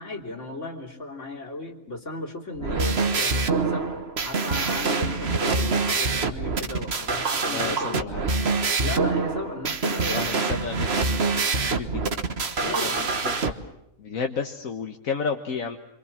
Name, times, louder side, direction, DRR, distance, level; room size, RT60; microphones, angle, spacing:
voice 1, 0.0-8.1 8.8-10.4 12.6-13.0, left 2 dB, 60° left, 3 dB, 3.5 m, -35 dB
sound 1, 2.6-13.5, right 4 dB, 50° right, 1.6 m, -25 dB
voice 2, 7.4-8.4 10.1-12.2 12.5-13.5 14.0-15.8, left 5 dB, 80° left, 4 dB, 1.8 m, -32 dB
27.0 x 26.0 x 7.4 m, 0.86 s
omnidirectional pair, 1.4 m